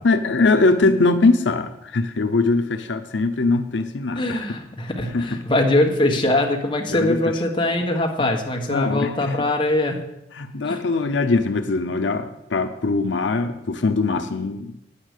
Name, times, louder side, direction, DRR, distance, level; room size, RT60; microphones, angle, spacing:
voice 1, 0.0-4.5 5.1-5.2 6.9-7.2 8.2-8.3 8.7-9.4 10.4-14.7, left 3 dB, 85° left, 8 dB, 0.7 m, -21 dB
voice 2, 4.1-10.0 10.6-10.8, left 1 dB, 25° left, 2 dB, 1.5 m, -22 dB
9.9 x 9.1 x 6.7 m, 0.89 s
head